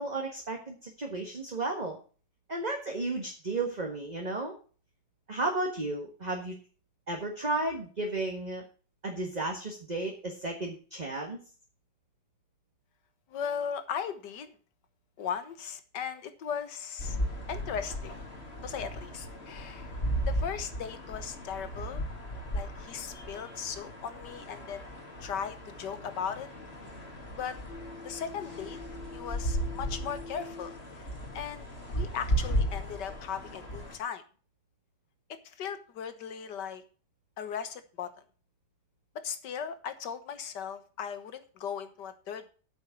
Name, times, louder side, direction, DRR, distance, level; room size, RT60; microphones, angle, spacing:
voice 1, 0.0-2.0 2.5-4.5 5.3-6.6 7.1-8.6 9.0-11.4, right 2 dB, 25° right, 2 dB, 1.5 m, -33 dB
voice 2, 13.3-14.6 15.2-17.2 17.5-18.2 18.6-20.0 20.3-22.1 22.5-24.9 25.2-26.5 27.4-27.6 28.0-28.8 29.1-34.2 35.4-36.8 37.4-38.1 39.2-42.5, left 7 dB, 90° left, 11 dB, 1.8 m, -38 dB
sound 1, 17.0-34.0, equal, 35° left, 2.4 m, -36 dB
8.4 x 7.7 x 7.1 m, 0.39 s
omnidirectional pair, 1.8 m